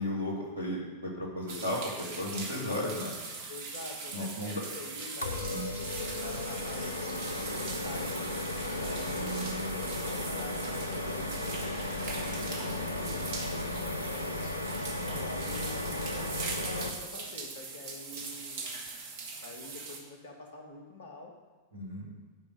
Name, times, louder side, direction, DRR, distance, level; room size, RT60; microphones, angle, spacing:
voice 1, 0.0-3.1 4.1-4.6 5.5-5.7 9.2-9.7 13.7-13.9 14.9-15.2 21.7-22.1, left 1 dB, 85° right, -3 dB, 2.4 m, -35 dB
sound 1, 1.5-20.0, right 4 dB, 50° right, 1.5 m, -41 dB
voice 2, 3.5-8.3 8.7-13.2 13.5-14.4 15.1-18.7 19.4-21.3, left 2 dB, 60° left, 2 dB, 1.6 m, -46 dB
sound 2, 5.2-16.9, left 2 dB, 80° left, 0.8 m, -35 dB
11.0 x 5.1 x 6.5 m, 1.3 s
figure-of-eight pair, 90°, 0 cm